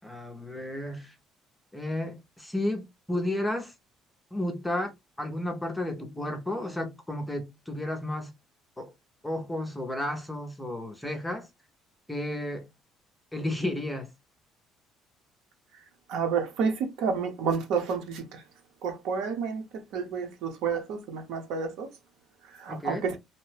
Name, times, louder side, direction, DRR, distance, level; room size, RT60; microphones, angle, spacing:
voice 1, 0.0-1.1 1.7-3.7 4.3-4.9 5.2-8.3 8.8-8.9 9.2-11.5 12.1-12.7 13.3-14.1 22.7-23.1, left 1 dB, 5° left, 0.5 m, -32 dB
voice 2, 16.1-18.4 18.8-19.6 19.9-21.9 22.6-23.2, right 6 dB, 65° right, 0.7 m, -30 dB
2.8 x 2.1 x 3.2 m
cardioid pair, 175°, 0 cm